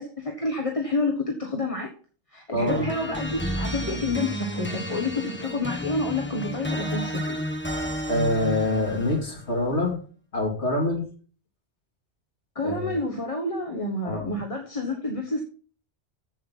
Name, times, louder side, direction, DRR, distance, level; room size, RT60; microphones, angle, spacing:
voice 1, 0.0-1.9 2.3-7.4 12.5-15.4, left 2 dB, 30° left, 2 dB, 1.3 m, -29 dB
voice 2, 2.5-2.9 8.1-10.0 10.3-11.0 12.6-13.0 14.0-14.4, left 1 dB, 75° left, -2 dB, 2.9 m, -25 dB
sound 1, 2.7-9.4, equal, 10° left, 1.0 m, -31 dB
7.8 x 7.5 x 5.5 m, 0.40 s
omnidirectional pair, 1.2 m